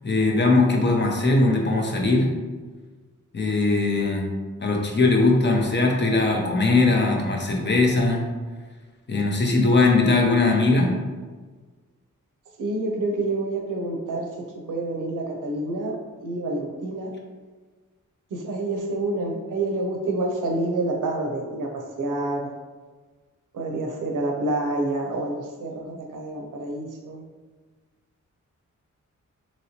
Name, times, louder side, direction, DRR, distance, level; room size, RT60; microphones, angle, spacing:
voice 1, 0.0-2.3 3.3-4.3 4.6-8.2 9.1-11.0, left 3 dB, 35° left, 0 dB, 0.6 m, -20 dB
voice 2, 12.6-14.3 14.7-16.0 16.2-17.1 18.3-22.5 23.5-27.2, right 2 dB, 90° right, 1 dB, 0.6 m, -28 dB
3.0 x 2.8 x 2.8 m, 1.4 s
wide cardioid pair, 80°, 31 cm